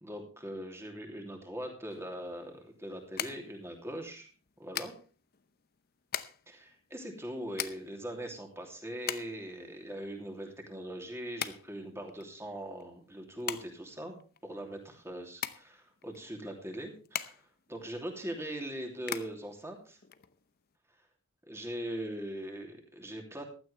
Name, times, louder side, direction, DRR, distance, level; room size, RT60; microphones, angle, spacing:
voice 1, 0.0-4.3 4.6-4.9 6.5-14.2 14.4-17.4 17.7-20.0 21.5-23.4, right 1 dB, 10° right, 3 dB, 2.9 m, -41 dB
sound 1, 1.9-20.7, left 9 dB, 45° left, 0.7 m, -43 dB
15.0 x 12.5 x 3.3 m, 0.36 s
head